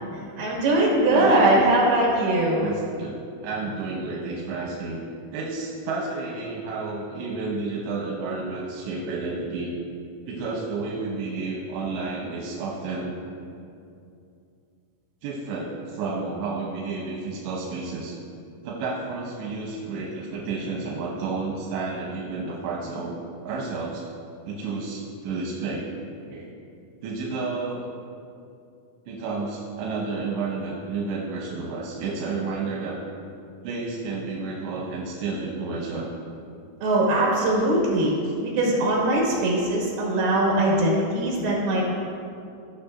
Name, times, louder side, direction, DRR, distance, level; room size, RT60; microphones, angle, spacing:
voice 1, 0.4-2.7 36.8-38.1 38.4-41.8, right 1 dB, 70° right, -4 dB, 3.7 m, -21 dB
voice 2, 1.1-1.6 2.6-3.2 3.4-5.0 5.3-9.7 10.3-13.2 15.2-18.2 18.6-23.2 23.4-24.0 24.5-25.9 26.3-26.5 27.0-27.9 29.1-33.0 33.6-36.1, right 3 dB, 90° right, -4 dB, 3.2 m, -31 dB
15.5 x 6.4 x 2.5 m, 2.5 s
omnidirectional pair, 5.0 m